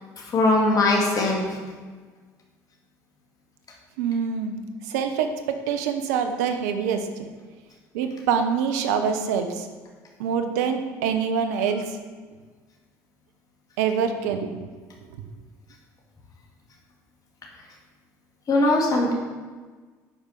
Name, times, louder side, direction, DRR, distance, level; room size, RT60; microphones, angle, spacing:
voice 1, 0.2-1.6 18.5-19.1, left 2 dB, 45° left, -1 dB, 2.3 m, -21 dB
voice 2, 4.0-4.6 4.8-7.3 7.9-9.7 10.2-12.0 13.8-14.6, right 7 dB, 85° right, 7 dB, 0.9 m, -25 dB
8.6 x 5.2 x 6.4 m, 1.4 s
hypercardioid pair, 70°, 9 cm